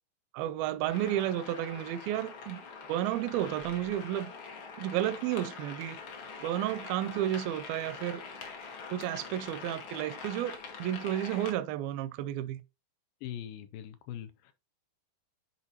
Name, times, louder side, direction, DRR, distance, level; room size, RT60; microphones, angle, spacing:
voice 1, 0.3-2.6 2.9-4.3 4.8-6.0 6.4-8.2 8.9-12.6, right 12 dB, 85° right, 2.3 m, -32 dB
sound 1, 0.9-11.5, left 4 dB, 65° left, 1.3 m, -44 dB
voice 2, 13.2-14.5, left 10 dB, 80° left, 2.1 m, -42 dB
10.5 x 4.1 x 2.8 m
omnidirectional pair, 4.3 m